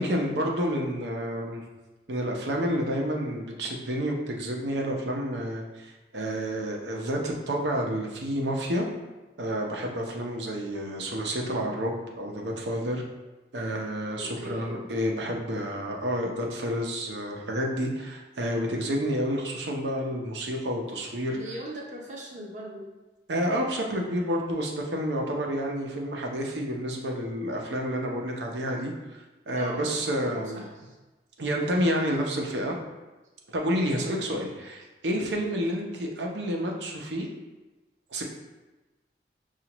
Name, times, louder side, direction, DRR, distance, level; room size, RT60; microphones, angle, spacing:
voice 1, 0.0-1.6 2.1-8.9 9.4-13.0 13.5-21.4 23.3-30.6 31.4-32.8 33.5-37.3 38.1-38.2, equal, 80° right, 0 dB, 0.7 m, -29 dB
voice 2, 14.2-14.9 21.3-22.9 29.5-31.0 33.9-34.1, right 1 dB, 40° right, -1 dB, 0.7 m, -40 dB
5.8 x 2.4 x 2.9 m, 1.1 s
head